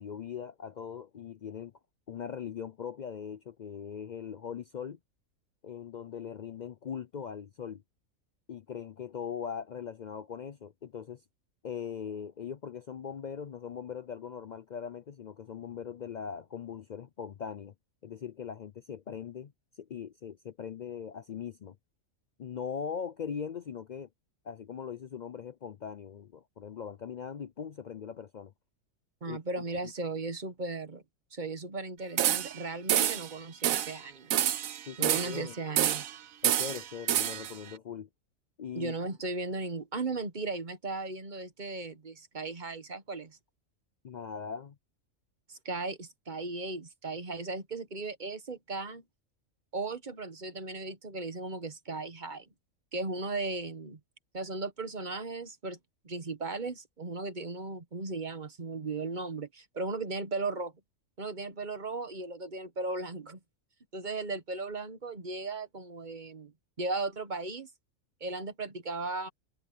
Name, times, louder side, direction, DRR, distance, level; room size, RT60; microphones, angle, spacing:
voice 1, 0.0-1.7 2.1-5.0 5.6-7.8 8.5-11.2 11.6-17.7 18.0-19.5 19.8-21.8 22.4-24.1 24.4-28.5 29.3-29.4 29.8-29.9 34.9-35.6 36.4-38.1 38.6-39.0 44.0-44.8, left 7 dB, 70° left, 0.4 m, -40 dB
voice 2, 29.2-31.0 31.3-34.4 35.0-36.0 38.7-43.4 45.5-49.0 49.7-52.5 52.9-54.0 54.3-55.8 56.0-60.7 61.2-63.4 63.9-66.5 66.8-67.7 68.2-69.3, right 3 dB, 35° right, 1.4 m, -36 dB
sound 1, 32.2-32.6 32.9-33.3 33.6-34.0 34.3-35.4 35.8-36.2 36.4-37.5, right 11 dB, 80° right, 1.2 m, -28 dB
omnidirectional pair, 1.4 m